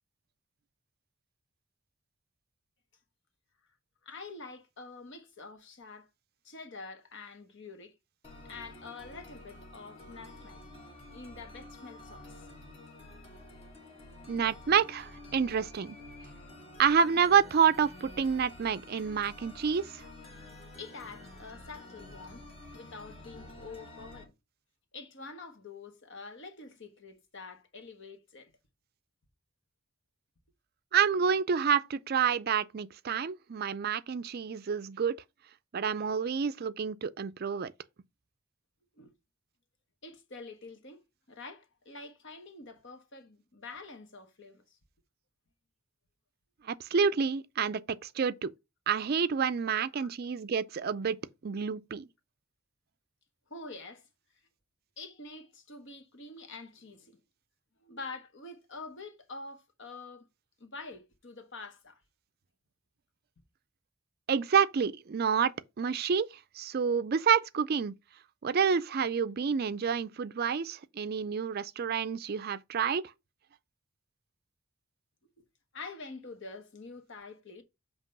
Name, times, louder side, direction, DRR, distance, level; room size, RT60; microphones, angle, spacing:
voice 1, 4.0-6.1 6.4-8.0 8.4-10.6 11.1-12.4 20.8-22.4 22.7-24.3 24.9-28.5 39.0-39.1 40.0-44.8 49.7-50.1 53.5-54.1 55.0-57.2 57.8-60.3 60.6-62.0 75.4-75.5 75.7-77.6, left 3 dB, 55° left, 1.2 m, -46 dB
sound 1, 8.2-24.2, left 1 dB, 25° left, 1.4 m, -49 dB
voice 2, 14.3-16.0 16.8-20.1 30.9-35.2 35.7-37.7 46.6-48.5 48.9-51.2 51.4-52.1 64.3-66.3 66.6-67.9 68.4-73.1, right 6 dB, 45° right, 0.4 m, -28 dB
7.4 x 3.0 x 5.2 m
head